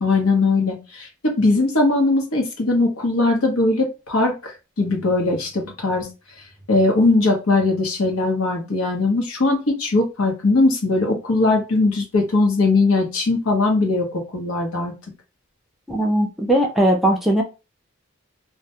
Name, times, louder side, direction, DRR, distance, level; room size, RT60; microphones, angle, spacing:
voice 1, 0.0-6.1 6.7-14.9, left 2 dB, 85° left, 2 dB, 0.8 m, -20 dB
voice 2, 15.9-17.4, right 1 dB, ahead, 0 dB, 0.3 m, -19 dB
2.2 x 2.1 x 2.8 m, 0.28 s
head